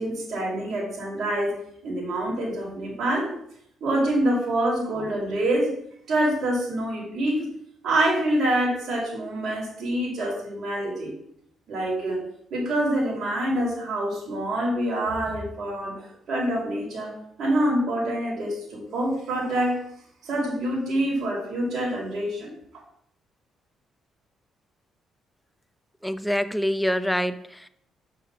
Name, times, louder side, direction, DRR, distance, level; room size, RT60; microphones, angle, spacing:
voice 1, 0.0-1.5 1.8-3.3 3.8-5.7 6.1-7.5 7.8-11.1 11.7-12.2 12.5-19.8 20.2-22.5, right 1 dB, 60° right, -4 dB, 4.8 m, -26 dB
voice 2, 26.0-27.7, equal, ahead, 11 dB, 0.8 m, -26 dB
6.8 x 6.7 x 7.4 m, 0.70 s
cardioid pair, 90°, 0 cm